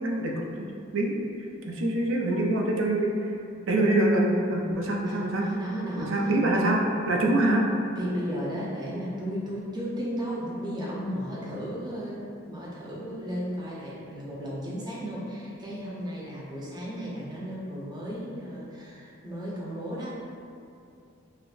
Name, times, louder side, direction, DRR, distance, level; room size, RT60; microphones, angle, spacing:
voice 1, 0.0-1.2 1.7-3.3 3.7-5.5 6.0-7.7, right 1 dB, 70° right, -1 dB, 0.5 m, -25 dB
voice 2, 5.0-6.7 7.9-20.2, equal, 20° right, -7 dB, 0.6 m, -34 dB
5.9 x 2.0 x 2.5 m, 2.5 s
head